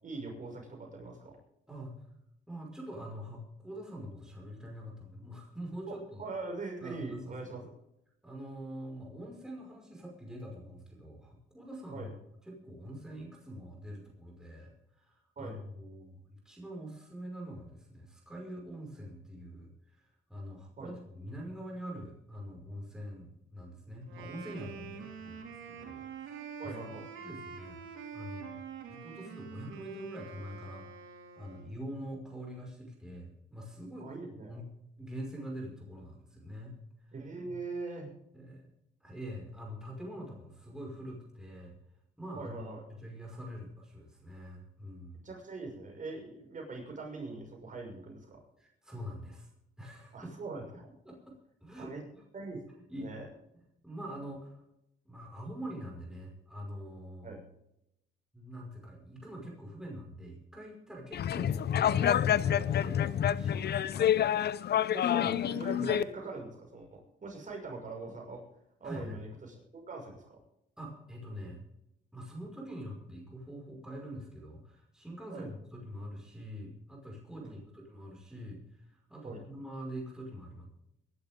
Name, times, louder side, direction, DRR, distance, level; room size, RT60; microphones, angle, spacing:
voice 1, 0.0-1.4 5.9-7.7 11.9-12.1 15.4-15.6 20.8-20.9 26.6-27.1 34.0-34.5 37.1-38.1 42.3-42.8 45.2-48.4 50.1-50.9 51.8-52.0 52.3-52.6 53.0-53.3 57.2-57.4 64.9-68.4 68.8-70.4 75.3-75.5 77.4-77.5 79.2-79.4, right 3 dB, 40° right, 1 dB, 6.0 m, -42 dB
voice 2, 1.7-2.0 2.5-6.3 6.8-7.5 8.2-12.1 12.5-19.7 20.3-26.8 27.2-27.8 28.1-28.6 28.9-30.9 31.4-34.6 35.0-36.8 37.4-37.6 38.3-38.7 39.0-41.8 42.2-45.2 48.6-49.5 49.8-50.6 51.1-51.3 51.6-51.9 52.9-53.1 53.8-54.6 55.1-57.4 58.3-64.1 65.2-65.3 65.8-65.9 68.8-69.2 70.8-71.6 72.1-80.6, equal, 5° right, -1 dB, 5.5 m, -44 dB
Wind instrument woodwind instrument, 24.0-31.8, right 6 dB, 80° right, 3.8 m, -46 dB
sound 1, 61.1-66.0, left 10 dB, 55° left, 0.7 m, -28 dB
22.5 x 11.5 x 3.7 m, 0.82 s
cardioid pair, 90°, 20 cm